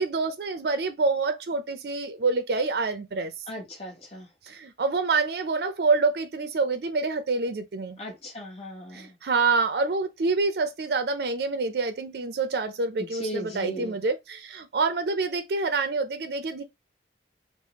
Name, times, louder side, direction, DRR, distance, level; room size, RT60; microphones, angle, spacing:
voice 1, 0.0-3.3 4.5-8.0 8.9-16.6, right 4 dB, 60° right, 0.4 m, -27 dB
voice 2, 3.5-4.3 8.0-9.2 13.1-13.9, equal, 35° left, 1.0 m, -37 dB
3.3 x 2.0 x 2.8 m
head